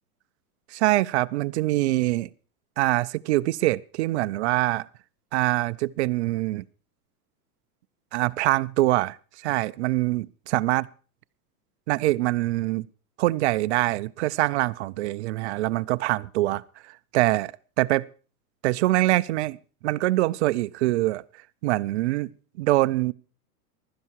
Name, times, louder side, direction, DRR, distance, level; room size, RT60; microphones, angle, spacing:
voice 1, 0.7-2.3 2.8-4.9 5.3-6.6 8.1-9.2 9.4-10.9 11.9-12.9 13.2-16.6 17.1-17.5 17.8-18.1 18.6-19.6 19.8-21.2 21.6-22.3 22.6-23.1, right 18 dB, 45° right, 0.6 m, -24 dB
16.0 x 12.0 x 4.7 m
supercardioid pair, 145°, 47 cm